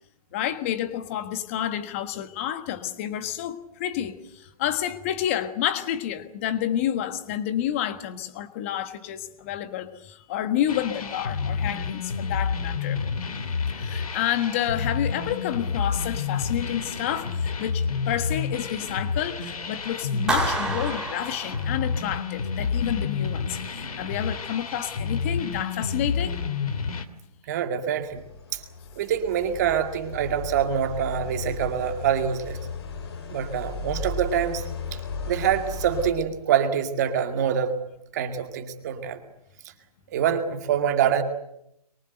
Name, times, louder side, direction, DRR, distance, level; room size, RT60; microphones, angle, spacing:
voice 1, 0.3-13.0 13.8-26.4, left 11 dB, 20° left, 1.5 m, -29 dB
sound 1, 10.7-27.0, left 5 dB, 65° left, 2.9 m, -29 dB
Clapping, 20.3-22.2, right 3 dB, 5° right, 2.5 m, -29 dB
voice 2, 27.5-28.2 28.5-28.6 29.0-32.6 33.3-34.6 34.9-35.0 35.3-37.8 38.1-39.2 40.1-41.2, right 8 dB, 25° right, 2.1 m, -25 dB
sound 2, 28.0-36.1, left 4 dB, 40° left, 3.0 m, -36 dB
23.5 x 23.5 x 7.9 m
hypercardioid pair, 165°, 20 cm